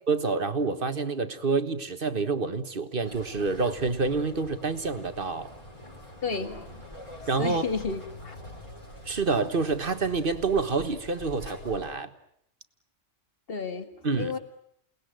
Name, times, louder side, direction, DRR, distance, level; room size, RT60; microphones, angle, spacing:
voice 1, 0.1-5.5 7.3-7.6 9.0-12.1 14.0-14.3, right 4 dB, 45° right, 10 dB, 1.6 m, -27 dB
sound 1, 3.0-11.9, left 1 dB, 25° left, 5.5 m, -45 dB
voice 2, 6.2-6.8 7.4-8.4 13.5-13.9 14.2-14.4, left 4 dB, 45° left, 8 dB, 2.2 m, -32 dB
29.0 x 19.5 x 9.2 m, 0.71 s
omnidirectional pair, 1.3 m